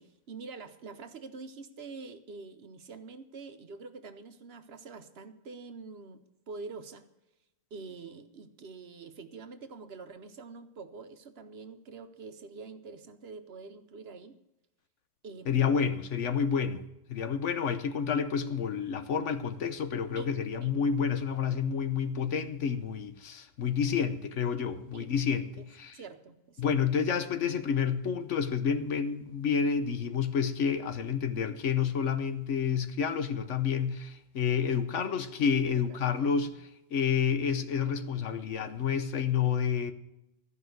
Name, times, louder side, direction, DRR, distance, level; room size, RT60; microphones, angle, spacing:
voice 1, 0.0-6.2 6.5-7.0 7.7-14.4 15.2-16.0 16.6-16.8 20.2-20.3 20.6-20.7 24.9-25.1 25.6-25.7 25.9-26.8 35.7-36.0 36.4-36.5, right 4 dB, 60° right, 1.0 m, -46 dB
voice 2, 15.5-16.8 17.1-26.0 26.6-36.5 36.9-39.9, left 7 dB, 75° left, 1.2 m, -29 dB
14.0 x 5.5 x 9.2 m
omnidirectional pair, 1.3 m